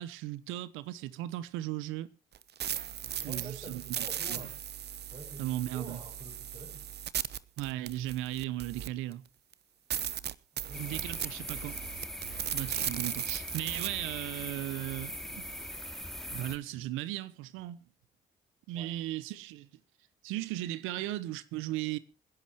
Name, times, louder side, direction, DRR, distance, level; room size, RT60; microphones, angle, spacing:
voice 1, 0.0-2.1 3.1-4.0 4.3-4.4 5.4-6.0 7.6-9.2 10.8-11.8 12.5-15.5 16.3-17.8 18.7-19.7 20.2-22.0, right 15 dB, 80° right, 1.0 m, -36 dB
sound 1, 2.3-9.1 9.5-9.6 9.9-13.9, right 10 dB, 55° right, 0.9 m, -37 dB
voice 2, 3.2-4.6 5.1-6.8 10.5-11.2 18.7-19.0, right 2 dB, 30° right, 6.5 m, -48 dB
sound 2, 10.7-16.6, equal, ahead, 3.3 m, -41 dB
26.5 x 10.5 x 3.0 m
hypercardioid pair, 50°, 21 cm